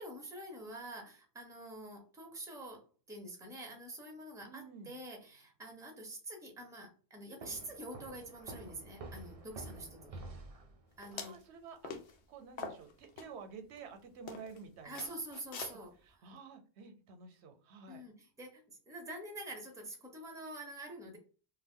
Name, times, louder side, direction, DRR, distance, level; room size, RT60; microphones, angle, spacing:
voice 1, 0.0-10.2 11.0-11.3 14.8-15.9 17.9-21.2, right 1 dB, 5° right, 2 dB, 0.6 m, -46 dB
voice 2, 4.5-4.9 11.1-11.9 12.3-15.2 16.0-18.1, right 5 dB, 90° right, 7 dB, 0.9 m, -51 dB
sound 1, 7.4-11.1, right 2 dB, 55° right, 0.4 m, -49 dB
sound 2, 11.0-11.4 11.8-12.1 12.6-13.3 13.8-13.9 14.3-14.6 14.9-15.7, left 5 dB, 85° left, 0.9 m, -44 dB
2.3 x 2.2 x 3.5 m, 0.38 s
omnidirectional pair, 1.1 m